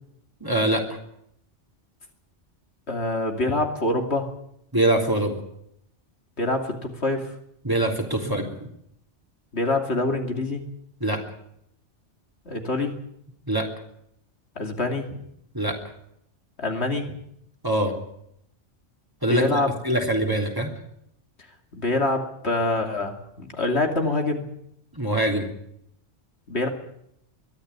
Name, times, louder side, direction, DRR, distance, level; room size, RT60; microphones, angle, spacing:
voice 1, 0.4-1.0 4.7-5.4 7.6-8.7 11.0-11.2 13.5-13.6 15.5-15.8 17.6-17.9 19.2-20.7 24.9-25.5, right 1 dB, 15° right, 2 dB, 3.4 m, -23 dB
voice 2, 2.9-4.3 6.4-7.3 9.5-10.6 12.5-12.9 14.6-15.1 16.6-17.1 19.3-19.7 21.7-24.4 26.5-26.7, left 2 dB, 60° left, 3 dB, 2.9 m, -25 dB
22.5 x 13.0 x 9.6 m, 0.75 s
omnidirectional pair, 1.2 m